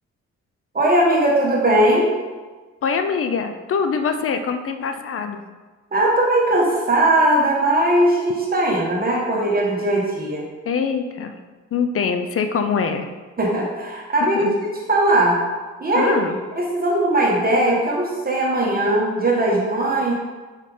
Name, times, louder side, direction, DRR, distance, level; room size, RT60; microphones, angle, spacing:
voice 1, 0.7-2.1 5.9-10.5 13.4-15.4 15.8-16.1 16.6-20.1, right 1 dB, 30° right, -3 dB, 1.3 m, -19 dB
voice 2, 2.8-5.4 10.7-11.4 11.7-13.1 14.3-14.6 15.9-16.4, left 5 dB, 45° left, 7 dB, 0.6 m, -23 dB
4.9 x 4.3 x 5.0 m, 1.3 s
cardioid pair, 90°, 30 cm